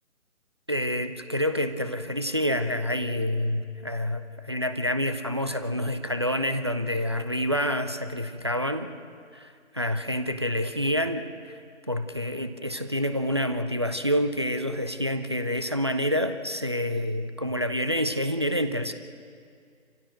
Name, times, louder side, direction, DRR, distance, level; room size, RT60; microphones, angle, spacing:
voice 1, 0.7-8.9 9.3-11.6 11.9-18.9, equal, 20° right, 8 dB, 0.5 m, -28 dB
26.5 x 16.0 x 7.8 m, 2.3 s
figure-of-eight pair, 150°, 40 cm